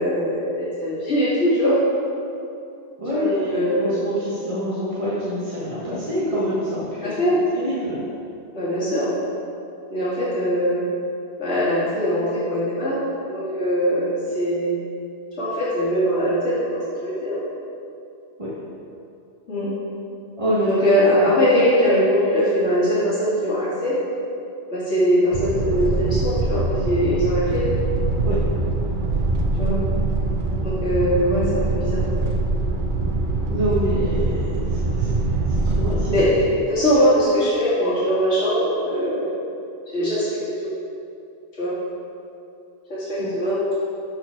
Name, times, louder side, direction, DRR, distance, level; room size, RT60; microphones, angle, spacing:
voice 1, 0.0-1.8 3.1-4.0 7.0-7.4 8.5-9.1 9.9-10.8 11.4-13.0 13.3-14.7 15.4-17.4 19.5-19.7 20.6-23.9 24.7-27.6 29.5-29.8 30.6-32.3 36.1-36.4 36.7-39.3 39.9-40.7 41.6-41.7 42.9-43.7, equal, 65° left, -11 dB, 2.5 m, -21 dB
voice 2, 3.0-8.0 18.4-18.5 20.4-20.8 21.2-21.3 28.2-28.5 33.5-36.2 43.2-43.3, equal, 30° right, -9 dB, 1.4 m, -26 dB
sound 1, 25.3-36.2, right 2 dB, 50° right, 0.8 m, -23 dB
13.0 x 4.5 x 4.6 m, 2.6 s
omnidirectional pair, 1.3 m